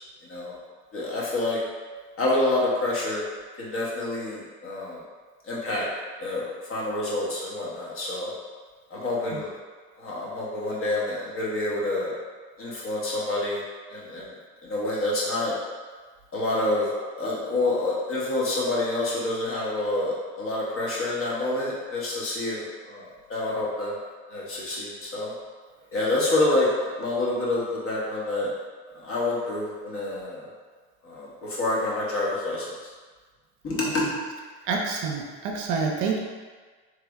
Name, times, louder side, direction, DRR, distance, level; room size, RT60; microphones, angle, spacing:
voice 1, 0.2-0.6 0.9-1.6 2.2-3.2 3.6-5.0 5.4-5.9 6.2-8.3 8.9-9.5 10.0-12.1 12.6-13.6 13.9-14.3 14.6-15.5 16.3-16.9 17.2-24.0 24.3-25.3 25.9-26.7 27.0-28.5 28.9-30.5 31.0-32.7 33.6-34.2, left 2 dB, 35° left, -5 dB, 1.1 m, -27 dB
voice 2, 34.6-36.2, right 4 dB, 55° right, 0 dB, 0.6 m, -27 dB
3.3 x 2.1 x 3.5 m, 1.5 s
supercardioid pair, 95°, 36 cm